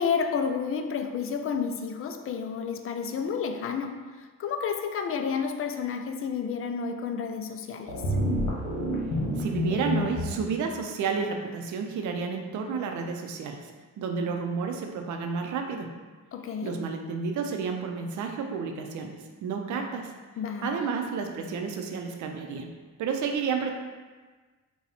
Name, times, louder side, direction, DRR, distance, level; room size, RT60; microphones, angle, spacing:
voice 1, 0.0-8.0 16.3-16.8 20.4-20.9, left 6 dB, 45° left, 6 dB, 0.4 m, -31 dB
sound 1, 7.9-10.3, left 1 dB, 75° left, 1.1 m, -28 dB
voice 2, 9.4-13.6 14.0-15.9 16.6-19.1 19.4-20.1 20.6-22.7 23.0-23.7, right 5 dB, 75° right, 4 dB, 0.6 m, -31 dB
4.2 x 2.3 x 4.1 m, 1.3 s
cardioid pair, 90°, 30 cm